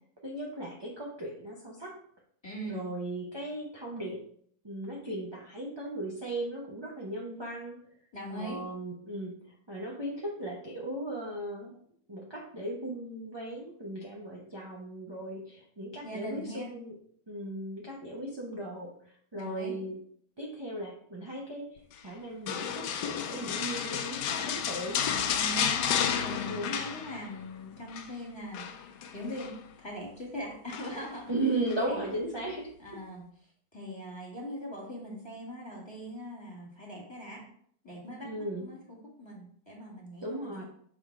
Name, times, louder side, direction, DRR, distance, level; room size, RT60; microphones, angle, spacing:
voice 1, 0.2-2.0 2.7-4.2 4.6-7.8 8.3-11.8 12.1-16.9 17.3-20.0 20.4-25.0 26.4-26.7 31.3-32.7 38.2-38.7 40.2-40.6, right 1 dB, 25° right, -3 dB, 0.6 m, -37 dB
voice 2, 2.4-2.8 8.1-8.6 16.0-16.7 19.3-19.8 25.3-25.8 26.1-31.3 31.8-32.1 32.8-33.3 33.7-37.4 37.8-40.6, equal, 15° left, -3 dB, 2.0 m, -41 dB
sound 1, 22.5-27.5 27.7-28.1 28.5-29.6 30.7-31.2 31.7-31.8, left 8 dB, 85° left, 1.2 m, -32 dB
6.2 x 3.7 x 4.6 m, 0.63 s
omnidirectional pair, 1.8 m